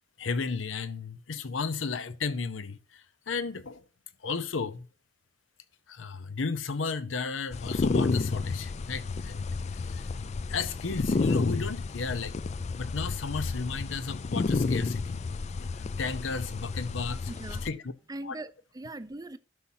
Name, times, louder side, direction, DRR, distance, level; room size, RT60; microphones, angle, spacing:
voice 1, 0.2-3.8 4.2-4.9 5.9-10.1 10.5-12.4 12.8-15.2 15.6-15.7 16.0-17.3 17.6-17.8 18.2-18.4, left 4 dB, 85° left, 0.7 m, -34 dB
sound 1, 7.5-17.7, left 3 dB, 35° left, 0.4 m, -31 dB
voice 2, 17.3-17.6 18.1-19.4, right 2 dB, 20° right, 0.6 m, -40 dB
12.5 x 5.6 x 2.7 m
head